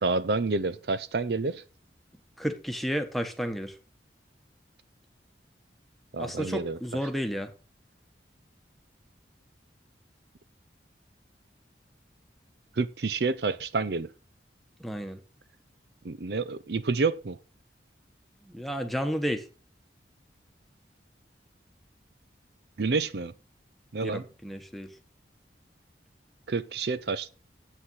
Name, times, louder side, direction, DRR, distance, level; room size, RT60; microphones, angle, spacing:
voice 1, 0.0-1.6 6.1-6.8 12.8-14.1 16.0-17.4 22.8-23.3 23.9-24.2 26.5-27.3, right 4 dB, 65° right, 0.6 m, -28 dB
voice 2, 2.4-3.8 6.2-7.5 14.8-15.2 18.4-19.5 24.0-24.9, equal, ahead, 1.2 m, -32 dB
9.0 x 8.0 x 5.6 m
head